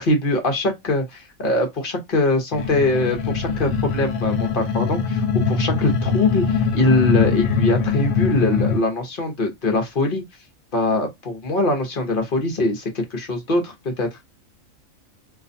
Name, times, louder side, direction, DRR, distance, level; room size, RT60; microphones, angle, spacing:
voice 1, 0.0-10.2 10.7-14.2, left 2 dB, 45° left, 0.9 m, -22 dB
sound 1, 2.5-8.8, left 5 dB, 80° left, 1.0 m, -22 dB
2.5 x 2.3 x 2.5 m
omnidirectional pair, 1.4 m